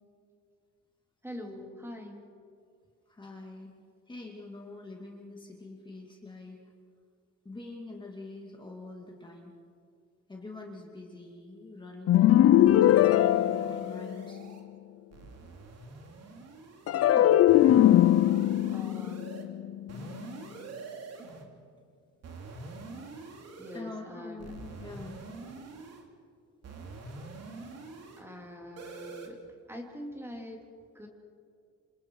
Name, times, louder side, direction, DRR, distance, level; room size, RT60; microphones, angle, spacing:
voice 1, 1.2-2.2 17.0-17.5 18.7-19.5 23.6-24.5 28.2-29.4 29.7-30.6 30.9-31.1, left 1 dB, 10° right, 1 dB, 2.9 m, -43 dB
voice 2, 3.1-3.7 4.1-6.6 7.4-9.5 10.3-14.4 23.7-25.2, left 2 dB, 15° left, -1 dB, 2.4 m, -44 dB
sound 1, 12.1-14.5 16.9-20.2, left 12 dB, 55° left, 0.5 m, -21 dB
sound 2, 12.7-14.6 15.1-17.1 17.5-19.4 19.9-21.5 22.2-23.8 24.4-26.1 26.6-28.2 28.8-29.3, right 3 dB, 60° right, 2.9 m, -45 dB
28.0 x 27.0 x 4.7 m, 2.2 s
cardioid pair, 150°, 29 cm